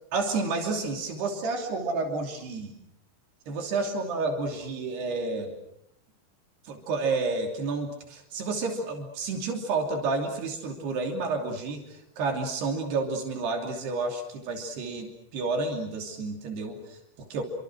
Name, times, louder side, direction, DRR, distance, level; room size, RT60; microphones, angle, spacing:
voice 1, 0.1-2.7 3.5-5.6 6.6-17.4, right 3 dB, 80° right, 3 dB, 5.0 m, -30 dB
30.0 x 25.0 x 6.3 m, 0.76 s
omnidirectional pair, 4.7 m